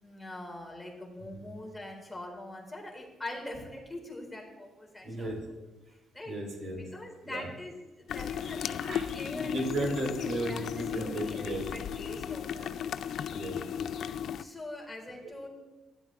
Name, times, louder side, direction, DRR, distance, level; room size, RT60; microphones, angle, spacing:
voice 1, 0.0-5.3 5.9-6.4 6.9-9.6 10.1-11.4 11.7-12.7 14.4-15.5, left 1 dB, 10° left, 1 dB, 1.8 m, -43 dB
voice 2, 5.0-5.4 6.3-6.8 7.2-7.5 8.4-8.5 8.8-9.0 9.3-11.6 12.5-12.7 13.3-13.9, right 1 dB, 65° right, 1 dB, 2.4 m, -35 dB
sound 1, 8.1-14.4, left 9 dB, 70° left, 0.3 m, -35 dB
13.0 x 10.0 x 2.4 m, 1.1 s
cardioid pair, 90°, 0 cm